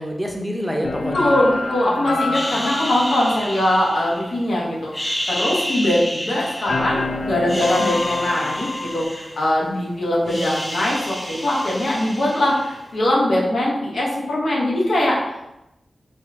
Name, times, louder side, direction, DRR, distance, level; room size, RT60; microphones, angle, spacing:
voice 1, 0.0-1.3, equal, 5° right, 0 dB, 0.7 m, -26 dB
sound 1, 0.8-4.5 6.7-9.0, left 3 dB, 60° left, 0.3 m, -27 dB
voice 2, 1.1-15.6, left 1 dB, 80° left, -4 dB, 1.3 m, -21 dB
sound 2, 2.3-4.5 4.9-7.0 7.4-9.8 10.0-12.9, equal, 25° left, 1.1 m, -30 dB
4.1 x 3.1 x 3.6 m, 0.90 s
wide cardioid pair, 130°, 0 cm